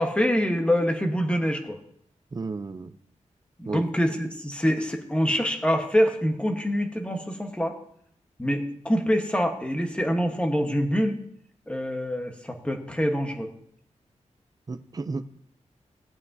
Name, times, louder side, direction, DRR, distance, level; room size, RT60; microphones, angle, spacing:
voice 1, 0.0-1.8 3.6-7.8 8.4-11.2 11.7-13.5, equal, 10° left, 4 dB, 1.2 m, -25 dB
voice 2, 2.3-3.0 3.7-3.9 14.7-15.3, right 3 dB, 30° right, 11 dB, 0.5 m, -33 dB
17.0 x 8.5 x 2.7 m, 0.67 s
wide cardioid pair, 135°, 12 cm